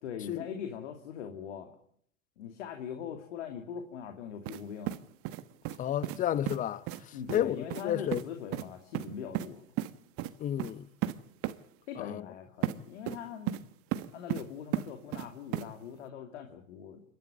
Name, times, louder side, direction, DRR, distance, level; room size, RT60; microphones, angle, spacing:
voice 1, 0.0-1.8 2.4-5.0 7.1-9.6 11.9-13.6 14.1-17.0, left 8 dB, 60° left, 2.7 m, -41 dB
sound 1, 4.5-4.6 4.9-5.8 6.0-6.2 6.5-6.6 6.9-7.0 7.3-7.4 7.7-7.8 8.1-8.2 8.5-8.6 8.9-9.5 9.8-9.9 10.2-10.3 10.6-10.7 11.0-11.1 11.4-11.5 12.6-12.7 13.1-13.6 13.9-14.4 14.7-15.3 15.5-15.7, right 14 dB, 35° right, 1.2 m, -33 dB
voice 2, 5.8-8.2 10.4-10.9 12.0-12.2, left 11 dB, 20° left, 0.8 m, -32 dB
28.0 x 13.0 x 9.0 m
hypercardioid pair, 110°, 40 cm